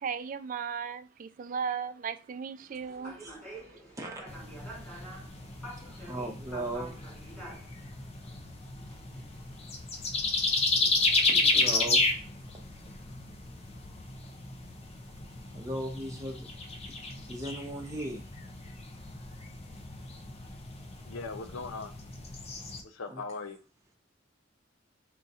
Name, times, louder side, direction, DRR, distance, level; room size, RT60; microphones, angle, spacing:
voice 1, 0.0-3.2, right 6 dB, 40° right, 0.3 m, -36 dB
sound 1, 2.7-13.1, right 1 dB, 5° left, 1.1 m, -49 dB
voice 2, 3.2-3.6 3.9-4.2 5.8-7.0 9.5-9.7 11.3-12.0 15.5-16.4 17.3-18.2 23.1-23.2, right 1 dB, 15° right, 0.8 m, -38 dB
sound 2, 4.3-22.8, left 3 dB, 30° left, 0.5 m, -32 dB
voice 3, 11.3-11.7 21.0-21.9 22.8-23.6, left 4 dB, 90° left, 0.5 m, -40 dB
3.8 x 2.4 x 4.1 m
head